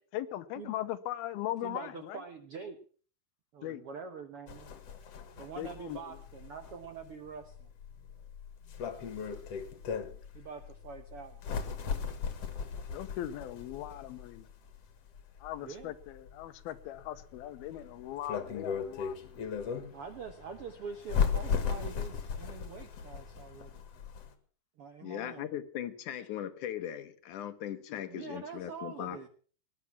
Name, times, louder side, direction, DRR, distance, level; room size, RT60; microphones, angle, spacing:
voice 1, 0.1-2.2 3.6-3.8 5.6-6.0 12.9-14.4 15.4-19.4 27.9-28.1, left 13 dB, 90° left, 2.8 m, -39 dB
voice 2, 1.6-2.8 3.5-4.7 5.3-7.7 10.3-11.4 15.6-15.9 19.9-23.7 24.8-25.5 28.1-29.3, right 5 dB, 70° right, 1.3 m, -45 dB
sound 1, 4.5-24.3, left 6 dB, 50° left, 2.3 m, -37 dB
voice 3, 25.0-29.2, left 11 dB, 70° left, 2.2 m, -39 dB
19.0 x 11.0 x 6.0 m
omnidirectional pair, 4.3 m